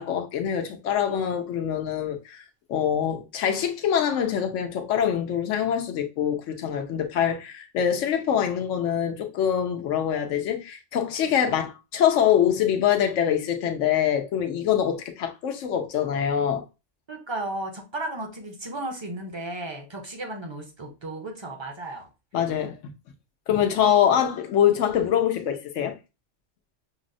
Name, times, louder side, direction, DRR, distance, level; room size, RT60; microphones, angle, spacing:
voice 1, 0.0-2.4 2.7-16.6 22.3-22.8 23.5-26.0, left 9 dB, 90° left, 1.0 m, -24 dB
voice 2, 17.1-22.1, right 2 dB, 30° right, 0.5 m, -34 dB
5.9 x 2.0 x 2.5 m
omnidirectional pair, 1.2 m